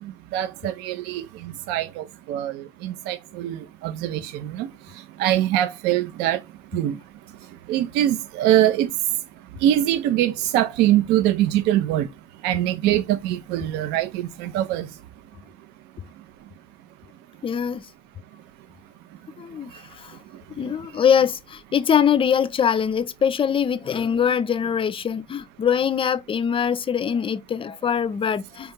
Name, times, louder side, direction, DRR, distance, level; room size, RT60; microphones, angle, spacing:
voice 1, 0.0-6.4 6.7-7.0 7.7-8.9 9.6-12.1 12.4-14.9, right 12 dB, 65° right, 0.5 m, -23 dB
voice 2, 17.4-17.9 19.4-20.2 20.6-28.7, left 8 dB, 30° left, 0.4 m, -23 dB
4.3 x 2.8 x 3.6 m
hypercardioid pair, 55°, 19 cm